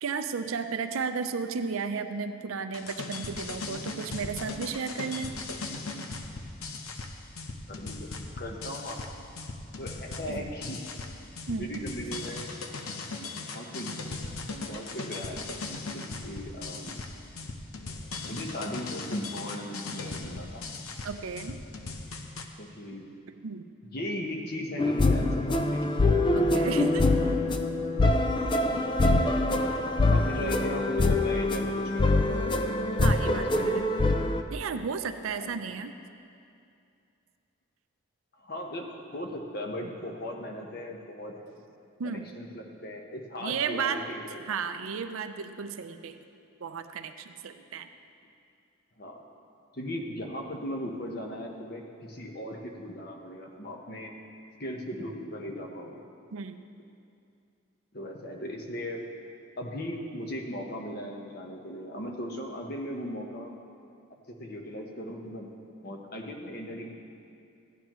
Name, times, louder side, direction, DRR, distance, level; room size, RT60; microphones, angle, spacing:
voice 1, 0.0-5.4 10.3-10.5 11.5-11.8 21.0-21.6 23.4-23.6 26.3-27.1 33.0-33.9 34.5-35.9 42.0-42.3 43.4-44.1 44.5-46.2 46.6-47.9 56.3-56.6, right 5 dB, 80° right, 9 dB, 0.5 m, -33 dB
sound 1, 2.7-22.5, left 3 dB, 85° left, 0.8 m, -38 dB
voice 2, 7.7-8.1 8.4-9.5 9.8-10.9 11.5-12.4 13.5-13.9 14.7-15.4 15.9-17.2 18.2-20.7 22.6-23.1 23.9-25.9 26.6-26.9 29.0-29.4 30.1-32.5 33.3-33.7 35.3-35.6 38.4-38.9 39.1-41.5 42.0-44.4 49.0-49.2 49.7-54.1 54.6-56.0 57.9-59.1 59.6-63.5 64.3-66.9, equal, 45° left, 1 dB, 1.0 m, -38 dB
sound 2, 24.8-34.4, left 2 dB, 20° left, 0.3 m, -24 dB
15.0 x 9.6 x 3.1 m, 2.5 s
head